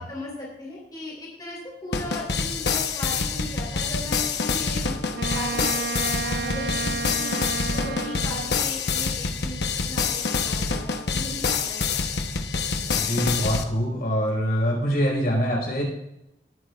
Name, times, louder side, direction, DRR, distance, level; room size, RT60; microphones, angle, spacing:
voice 1, 0.0-7.3 7.7-9.6 9.9-12.1, left 1 dB, 20° left, -4 dB, 3.7 m, -37 dB
sound 1, 1.9-13.6, left 5 dB, 70° left, 0.9 m, -26 dB
Wind instrument woodwind instrument, 5.1-8.7, right 5 dB, 60° right, 0.4 m, -31 dB
voice 2, 12.8-15.8, equal, 55° left, -2 dB, 4.7 m, -24 dB
19.5 x 9.8 x 2.4 m, 0.87 s
head